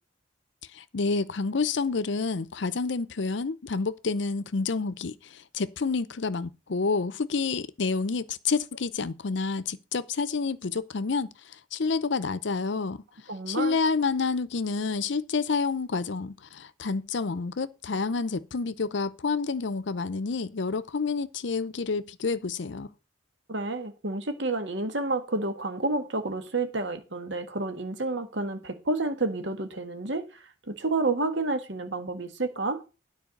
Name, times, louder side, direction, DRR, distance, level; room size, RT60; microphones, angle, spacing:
voice 1, 0.7-11.3 11.7-13.0 13.5-22.9, left 4 dB, 65° left, 0.6 m, -29 dB
voice 2, 13.3-13.8 23.5-30.2 30.7-32.8, right 2 dB, 65° right, 1.6 m, -30 dB
9.7 x 4.7 x 7.1 m
head